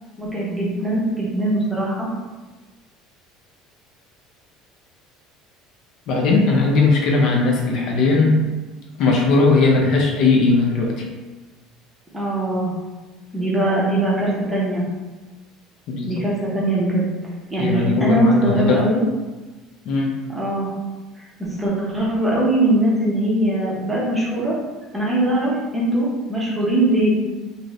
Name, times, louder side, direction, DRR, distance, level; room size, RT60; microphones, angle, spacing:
voice 1, 0.2-2.1 12.1-12.7 13.3-14.8 16.0-17.1 17.5-19.0 20.3-20.7 21.2-24.6 24.9-27.1, right 1 dB, 10° right, -6 dB, 0.7 m, -21 dB
voice 2, 6.1-8.4 9.0-11.0 15.9-16.2 17.6-18.8 19.9-20.2, left 3 dB, 50° left, -1 dB, 0.5 m, -18 dB
2.6 x 2.5 x 3.1 m, 1.2 s
cardioid pair, 165°, 0 cm